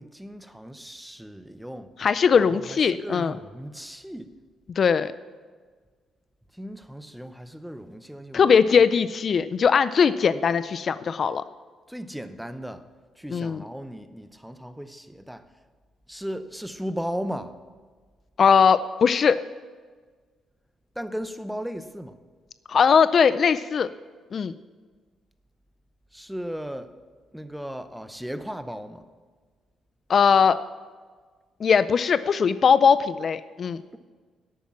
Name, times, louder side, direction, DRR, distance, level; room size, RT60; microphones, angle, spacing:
voice 1, 0.0-1.9 2.3-4.3 6.5-8.9 11.9-12.8 13.2-15.4 16.1-17.5 21.0-22.2 26.1-26.9 27.3-29.1, equal, ahead, 11 dB, 0.7 m, -36 dB
voice 2, 2.0-3.3 4.8-5.1 8.3-11.4 13.3-13.6 18.4-19.4 22.7-23.9 24.3-24.5 30.1-30.6 31.6-33.8, left 6 dB, 50° left, 14 dB, 0.4 m, -20 dB
11.5 x 8.6 x 6.0 m, 1.5 s
cardioid pair, 90°, 0 cm